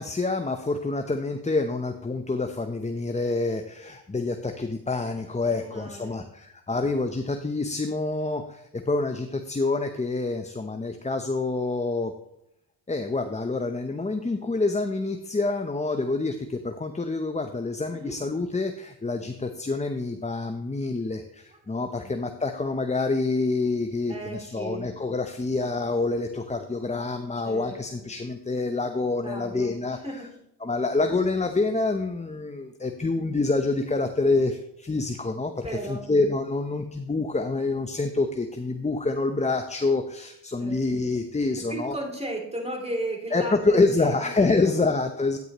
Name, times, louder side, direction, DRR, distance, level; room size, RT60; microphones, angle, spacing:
voice 1, 0.0-12.1 12.9-30.2 30.6-42.0 43.3-45.4, left 3 dB, 15° left, 6 dB, 0.7 m, -27 dB
voice 2, 5.5-6.3 17.9-18.2 22.0-22.1 24.1-24.9 27.4-28.1 29.2-29.7 30.0-30.3 35.6-36.0 40.6-40.9 41.7-44.7, right 1 dB, 15° right, 1 dB, 3.0 m, -35 dB
9.5 x 9.4 x 3.0 m, 0.80 s
cardioid pair, 55°, 40 cm